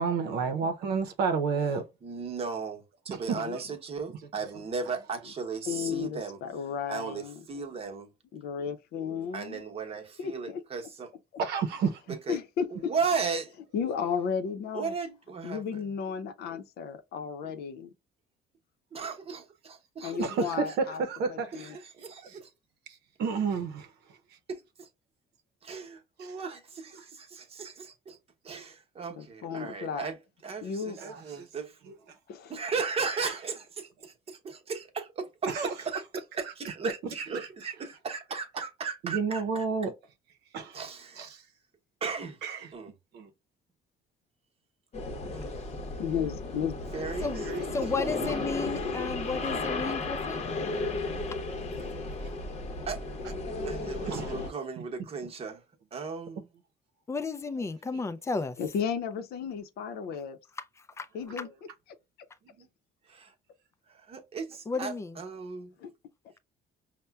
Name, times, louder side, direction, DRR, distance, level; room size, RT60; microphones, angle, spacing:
voice 1, 0.0-1.8 3.1-3.6 4.1-5.1 11.4-12.2 13.0-13.1 20.2-21.8 22.2-22.4 23.2-23.9 26.2-26.4 26.9-27.0 31.0-31.5 31.8-32.0 33.0-33.4 35.5-36.1 36.4-37.9 38.1-38.2 39.0-39.9 40.5-40.8 41.1-41.4 42.4-42.7 43.1-43.3 47.2-48.4 53.2-53.3 54.0-54.5 54.8-54.9 55.2-55.3 57.9-58.0 61.2-61.5, right 5 dB, 75° right, 0.7 m, -32 dB
voice 2, 2.0-2.8 3.1-6.4 6.9-7.2 7.5-8.1 9.3-11.1 12.3-12.4 12.9-13.5 14.7-15.6 18.9-20.2 22.0-22.2 25.6-28.2 28.4-30.2 30.4-30.9 31.2-31.7 32.5-35.5 35.8-36.0 36.4-39.4 40.7-41.3 42.0-42.4 42.7-42.9 45.3-45.5 46.9-47.3 52.9-53.0 53.6-55.6 55.9-56.4 63.1-63.3 64.1-65.7, right 5 dB, 35° right, 0.9 m, -35 dB
voice 3, 5.6-7.5 8.3-9.6 10.2-10.6 12.3-12.9 13.7-15.0 15.4-17.9 20.0-21.0 21.3-21.8 29.1-30.1 30.6-31.0 32.3-32.6 46.0-46.8 58.6-60.4 61.1-61.5 65.8-65.9, left 7 dB, 70° left, 0.7 m, -34 dB
sound 1, 44.9-54.5, left 3 dB, 40° left, 0.8 m, -34 dB
voice 4, 47.7-50.4 57.1-58.6 60.6-61.1 64.7-65.2, left 4 dB, 15° left, 0.4 m, -33 dB
5.4 x 2.1 x 2.3 m
cardioid pair, 110°, 17 cm